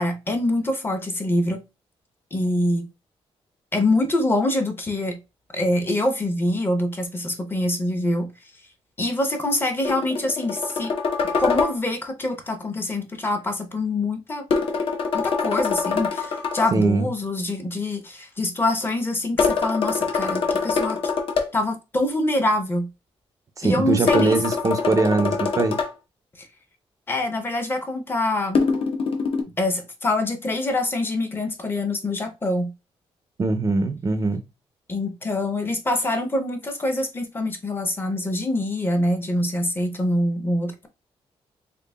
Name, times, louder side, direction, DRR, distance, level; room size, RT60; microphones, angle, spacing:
voice 1, 0.0-1.6 2.3-2.9 3.7-5.2 5.5-8.3 9.0-10.9 11.4-14.5 15.1-21.0 21.5-22.9 23.6-24.4 26.4-26.5 27.1-28.6 29.6-32.7 34.9-40.9, left 1 dB, 20° left, 0.7 m, -25 dB
sound 1, 9.8-11.8 14.5-16.7 19.4-21.5 24.1-25.9 28.5-29.4, left 5 dB, 60° left, 0.8 m, -24 dB
voice 2, 16.7-17.1 23.6-25.8 33.4-34.4, right 3 dB, 30° right, 0.4 m, -22 dB
3.8 x 3.4 x 2.2 m
wide cardioid pair, 155°, 11 cm